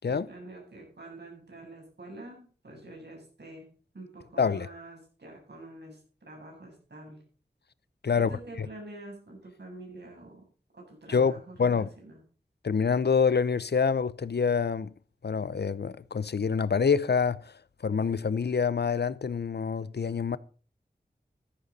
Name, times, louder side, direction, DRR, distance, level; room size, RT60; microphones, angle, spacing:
voice 1, 0.0-3.7 3.9-7.2 8.1-10.4 10.7-12.2, right 2 dB, 80° right, 8.0 m, -47 dB
voice 2, 8.0-8.7 11.1-11.9 12.6-14.9 15.2-17.5 17.8-20.4, left 6 dB, 75° left, 0.7 m, -26 dB
14.0 x 13.0 x 4.2 m
wide cardioid pair, 40°, 17 cm